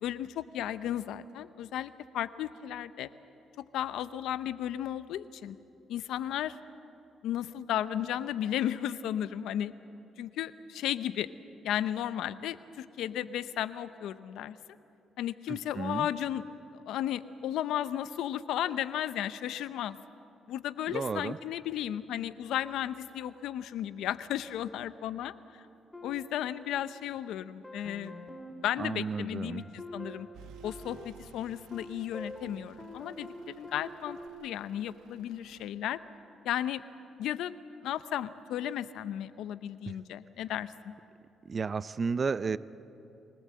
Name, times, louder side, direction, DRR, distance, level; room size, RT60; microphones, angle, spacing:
voice 1, 0.0-3.1 3.6-5.6 5.9-6.6 7.2-9.7 10.2-11.3 11.6-14.6 15.2-16.4 16.7-20.0 20.5-25.6 26.0-28.1 28.6-30.3 30.6-36.0 36.4-36.8 37.2-37.5 37.8-40.9, left 11 dB, 85° left, 14 dB, 0.6 m, -34 dB
voice 2, 15.5-16.1 20.9-21.4 28.8-29.7 41.5-42.6, right 5 dB, 40° right, 16 dB, 0.5 m, -32 dB
sound 1, 25.9-27.2 27.6-34.3, equal, 10° left, 2.4 m, -47 dB
Truck / Idling, 30.3-35.7, right 6 dB, 90° right, 1.3 m, -56 dB
23.5 x 18.5 x 7.6 m, 2.9 s
cardioid pair, 90°, 0 cm